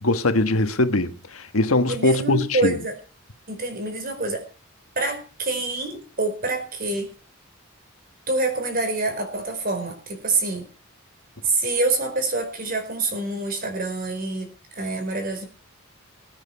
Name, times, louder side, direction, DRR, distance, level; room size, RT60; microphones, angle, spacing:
voice 1, 0.0-2.8, left 2 dB, 85° left, 1.4 m, -21 dB
voice 2, 1.9-2.9 3.5-4.4 4.9-7.1 8.3-10.7 11.4-15.5, right 2 dB, 45° right, 4.9 m, -26 dB
21.0 x 9.1 x 4.7 m
head